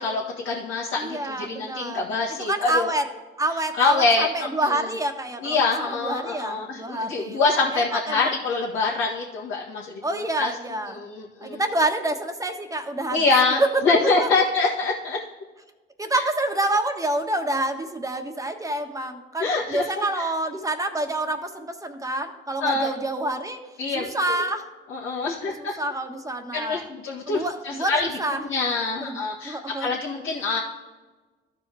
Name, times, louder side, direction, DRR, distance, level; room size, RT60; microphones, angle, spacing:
voice 1, 0.0-2.9 3.8-4.9 5.4-10.5 10.9-11.6 13.1-15.2 19.4-20.3 22.6-22.9 23.8-24.4 24.9-25.7 26.5-28.1 28.4-30.6, left 3 dB, 70° left, -6 dB, 1.7 m, -25 dB
voice 2, 1.0-2.1 2.4-3.1 3.4-7.4 7.7-8.4 10.0-11.0 11.4-13.2 13.6-13.7 14.2-14.3 16.0-23.6 23.9-24.7 25.6-26.9 27.3-28.4 29.0-29.9, right 1 dB, 15° right, 5 dB, 1.4 m, -27 dB
13.5 x 5.0 x 3.5 m, 1.2 s
supercardioid pair, 65°, 21 cm